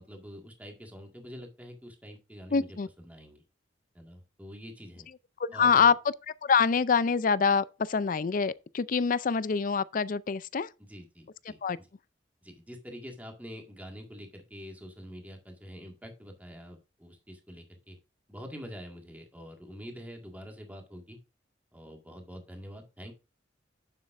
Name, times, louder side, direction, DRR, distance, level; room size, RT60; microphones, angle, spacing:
voice 1, 0.0-3.4 3.9-5.1 5.5-5.9 10.8-11.9 12.4-18.0 18.3-21.2 21.7-23.1, equal, 10° right, 1.8 m, -46 dB
voice 2, 2.5-2.9 5.4-5.9 6.4-10.7 11.6-11.8, left 5 dB, 45° left, 0.4 m, -25 dB
9.6 x 7.4 x 2.6 m
head